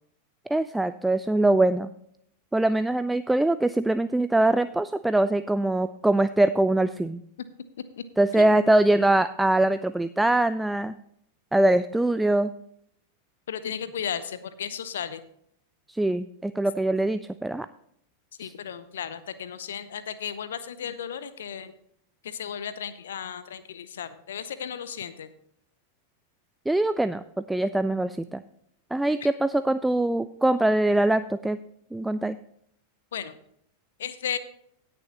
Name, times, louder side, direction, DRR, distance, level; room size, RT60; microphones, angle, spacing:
voice 1, 0.5-1.9 2.5-7.2 8.2-10.9 11.5-12.5 15.9-17.7 18.4-18.5 26.7-28.4 28.9-31.6 31.9-32.4, right 1 dB, 5° right, 12 dB, 0.3 m, -23 dB
voice 2, 13.5-15.2 18.4-21.7 22.2-25.3 33.1-33.3 34.0-34.4, left 8 dB, 60° left, 14 dB, 0.6 m, -34 dB
17.5 x 6.9 x 2.9 m, 0.71 s
figure-of-eight pair, 90°, 0 cm